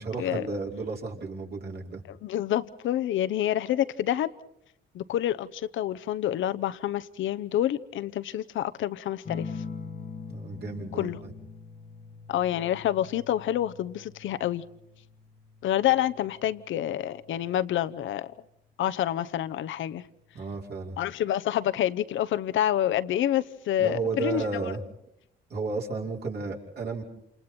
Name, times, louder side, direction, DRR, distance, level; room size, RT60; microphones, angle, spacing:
voice 1, 0.0-2.0 10.3-11.3 20.3-21.0 23.8-24.8 25.5-27.0, right 4 dB, 55° right, -1 dB, 5.2 m, -33 dB
voice 2, 2.1-4.3 4.9-9.6 10.9-11.2 12.3-14.6 15.6-18.3 18.8-20.0 21.0-24.6, left 12 dB, 75° left, 12 dB, 1.0 m, -28 dB
sound 1, 9.3-18.3 19.8-20.3, left 4 dB, 40° left, 1.3 m, -44 dB
28.5 x 28.0 x 4.4 m, 0.78 s
cardioid pair, 90°, 20 cm